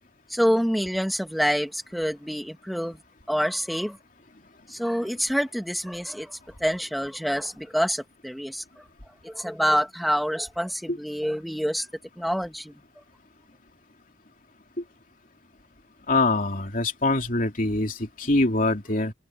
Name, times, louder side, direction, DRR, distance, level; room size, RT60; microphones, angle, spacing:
voice 1, 0.3-3.0 3.3-4.0 4.7-8.6 9.2-11.9 12.2-12.7, equal, ahead, 2.2 m, -27 dB
voice 2, 16.1-19.1, left 2 dB, 50° left, 3.2 m, -24 dB
open air
head